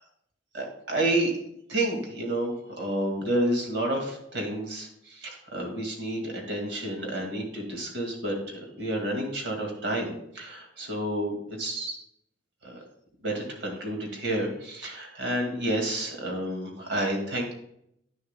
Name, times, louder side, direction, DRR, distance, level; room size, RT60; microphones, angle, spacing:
voice 1, 0.5-1.3 1.7-12.0 12.6-12.8 13.2-17.5, right 1 dB, 90° right, 1 dB, 2.0 m, -30 dB
10.0 x 6.8 x 2.2 m, 0.73 s
head